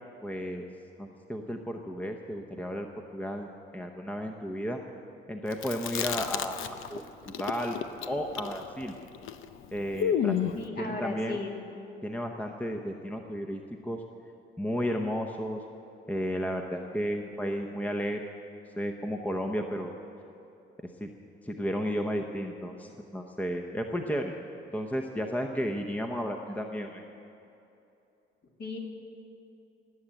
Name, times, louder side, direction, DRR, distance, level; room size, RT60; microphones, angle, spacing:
voice 1, 0.2-0.6 1.0-4.8 5.3-7.8 8.0-8.9 9.7-10.5 10.8-11.4 12.0-14.0 14.6-15.6 16.1-18.3 18.8-19.9 21.0-21.1 21.4-24.3 24.7-27.0, equal, 5° left, 4 dB, 0.9 m, -33 dB
Chewing mastication, 5.5-7.0 7.3-10.7, left 9 dB, 80° left, 0.7 m, -31 dB
voice 2, 10.5-11.5 28.6-28.8, left 3 dB, 50° left, 0 dB, 2.6 m, -35 dB
19.0 x 8.0 x 8.9 m, 2.8 s
cardioid pair, 110°, 20 cm